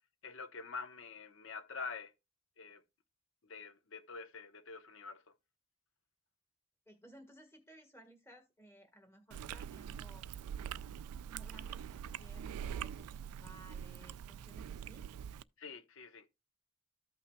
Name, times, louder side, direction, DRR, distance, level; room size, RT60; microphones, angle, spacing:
voice 1, 0.2-2.1 2.6-2.8 3.5-5.2 15.6-16.3, left 4 dB, 60° left, 0.9 m, -46 dB
voice 2, 6.9-10.3 11.3-15.1, right 1 dB, 10° left, 1.5 m, -59 dB
Chewing mastication, 9.3-15.4, right 8 dB, 90° right, 0.3 m, -44 dB
14.0 x 5.7 x 2.3 m
head